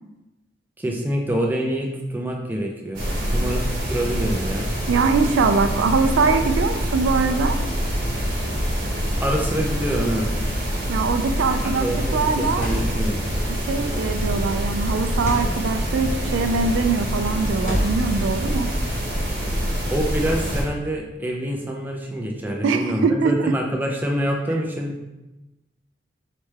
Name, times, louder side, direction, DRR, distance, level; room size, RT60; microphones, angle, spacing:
voice 1, 0.8-3.0 3.3-4.7 9.2-10.3 11.8-13.2 19.9-25.0, equal, 10° right, 0 dB, 0.4 m, -26 dB
sound 1, 2.9-20.6, equal, 55° right, 1.2 m, -25 dB
voice 2, 4.9-7.6 10.9-12.7 13.5-18.7 22.6-23.6, right 4 dB, 85° right, 7 dB, 0.4 m, -22 dB
sound 2, 12.4-13.1 13.9-14.2 15.1-15.5 16.4-16.8 17.6-18.2, equal, 40° left, 1.0 m, -30 dB
4.2 x 3.3 x 3.3 m, 1.0 s
head